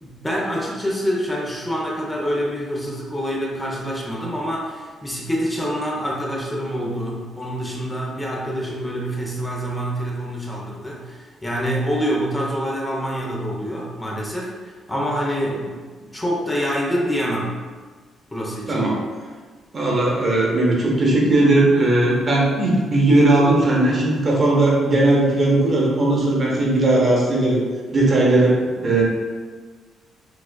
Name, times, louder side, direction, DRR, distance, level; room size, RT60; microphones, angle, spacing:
voice 1, 0.0-17.6 18.3-18.9, equal, 15° left, -3 dB, 0.7 m, -26 dB
voice 2, 18.7-19.0 19.7-27.6 27.9-29.0, right 2 dB, 40° right, -3 dB, 0.9 m, -18 dB
4.7 x 2.3 x 2.2 m, 1.5 s
cardioid pair, 90°, 0 cm